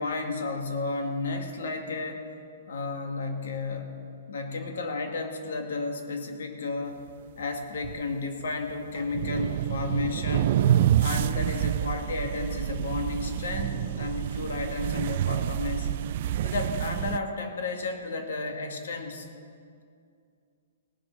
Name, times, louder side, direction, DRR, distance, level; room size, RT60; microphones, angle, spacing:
voice 1, 0.0-2.3 2.7-4.0 4.3-7.0 7.4-10.6 11.0-15.9 16.4-19.3, left 3 dB, 75° left, 4 dB, 2.0 m, -32 dB
sound 1, 7.4-7.5 7.8-8.1 9.0-17.2, right 11 dB, 40° right, 0.3 m, -27 dB
18.5 x 7.8 x 6.0 m, 2.3 s
hypercardioid pair, 170°, 0 cm